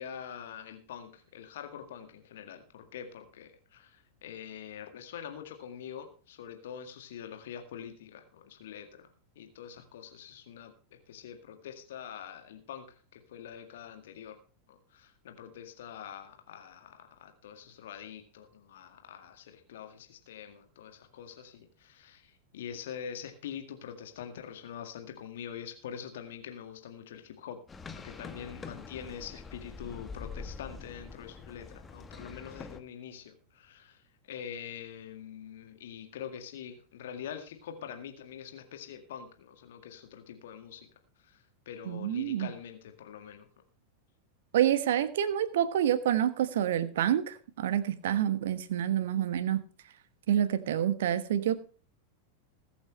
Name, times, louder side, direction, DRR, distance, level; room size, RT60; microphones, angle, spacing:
voice 1, 0.0-9.1 9.4-14.4 14.7-27.6 27.9-40.9 41.2-43.5, left 8 dB, 60° left, 6 dB, 1.9 m, -45 dB
sound 1, 27.7-32.8, left 4 dB, 15° left, 1.1 m, -45 dB
voice 2, 41.9-42.5 44.5-49.6 50.3-51.6, right 10 dB, 55° right, 13 dB, 1.2 m, -28 dB
21.0 x 8.6 x 3.2 m, 0.39 s
figure-of-eight pair, 90°, 0 cm